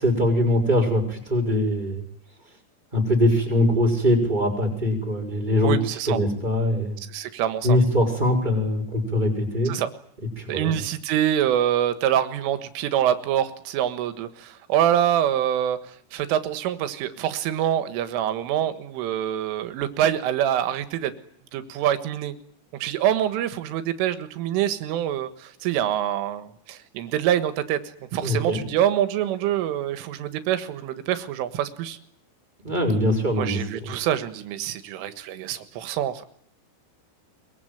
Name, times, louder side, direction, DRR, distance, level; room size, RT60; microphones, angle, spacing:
voice 1, 0.0-2.0 2.9-5.7 6.1-7.0 7.6-9.7 10.4-10.8 28.2-28.6 32.6-33.9, left 1 dB, 10° right, 2 dB, 6.6 m, -22 dB
voice 2, 5.6-6.2 7.1-7.8 9.7-9.9 10.5-21.1 21.5-22.4 22.8-32.0 33.4-36.2, right 11 dB, 90° right, 11 dB, 4.0 m, -25 dB
23.0 x 23.0 x 9.1 m, 0.65 s
omnidirectional pair, 5.6 m